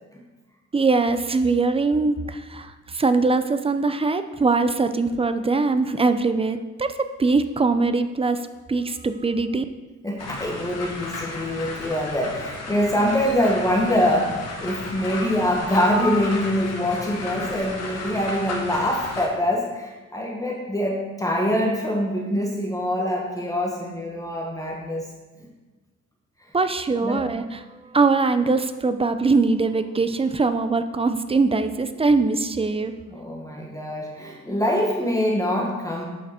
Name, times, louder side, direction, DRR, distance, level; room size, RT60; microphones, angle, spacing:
voice 1, 0.7-9.6 26.5-27.6 27.9-32.9, right 3 dB, 20° right, 10 dB, 0.5 m, -22 dB
voice 2, 10.0-25.1 27.0-27.2 33.1-36.0, equal, 10° left, -2 dB, 1.2 m, -24 dB
sound 1, 10.2-19.3, left 3 dB, 60° left, 1.5 m, -34 dB
7.3 x 5.6 x 4.4 m, 1.2 s
cardioid pair, 90°, 30 cm